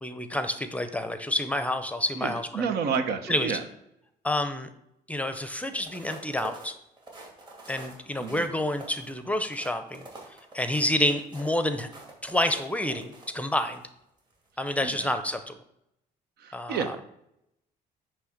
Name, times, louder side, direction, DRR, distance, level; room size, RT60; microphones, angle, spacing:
voice 1, 0.0-2.5 3.3-3.5 4.2-4.7 5.1-6.7 7.7-10.1 10.5-11.9 12.2-13.8 14.6-15.6 16.5-16.8, left 1 dB, 10° left, 9 dB, 0.7 m, -28 dB
voice 2, 2.2-3.6 8.2-8.5 14.8-15.1 16.4-17.2, right 6 dB, 70° right, 8 dB, 1.0 m, -31 dB
sound 1, 5.7-13.8 14.3-14.5, right 3 dB, 25° right, 2.5 m, -46 dB
9.6 x 3.4 x 6.5 m, 0.80 s
cardioid pair, 110°, 17 cm